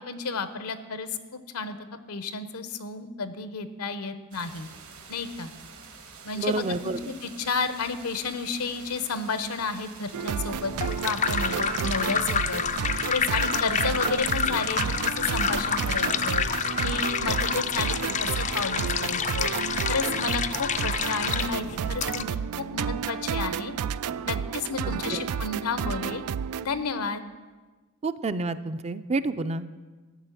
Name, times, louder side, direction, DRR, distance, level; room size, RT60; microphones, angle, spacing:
voice 1, 0.1-1.8 2.1-4.7 5.1-5.5 6.2-22.3 22.6-23.7 24.2-26.2 26.6-27.2, left 4 dB, 85° left, 11 dB, 0.9 m, -32 dB
sound 1, 4.3-18.6, right 5 dB, 70° right, 2.0 m, -48 dB
voice 2, 6.4-7.0 24.8-25.2 28.0-29.7, right 3 dB, 30° right, 11 dB, 0.4 m, -29 dB
sound 2, 10.1-26.7, right 7 dB, 85° right, 0.4 m, -31 dB
sound 3, 10.5-22.2, left 6 dB, 35° left, 0.4 m, -28 dB
13.0 x 6.4 x 9.0 m, 1.3 s
head